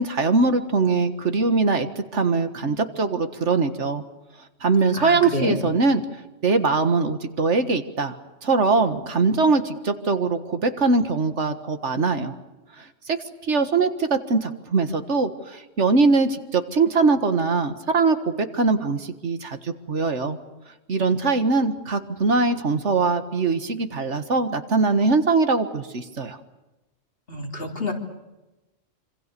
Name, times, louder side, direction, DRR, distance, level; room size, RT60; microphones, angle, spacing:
voice 1, 0.0-1.9 2.1-4.0 4.6-6.0 6.4-8.1 8.4-12.3 12.8-13.2 13.5-20.4 20.9-26.4, right 4 dB, 70° right, 9 dB, 1.9 m, -22 dB
voice 2, 5.0-5.7 27.3-27.9, left 2 dB, 50° left, 2 dB, 3.7 m, -28 dB
26.5 x 26.5 x 6.9 m, 1.0 s
omnidirectional pair, 1.3 m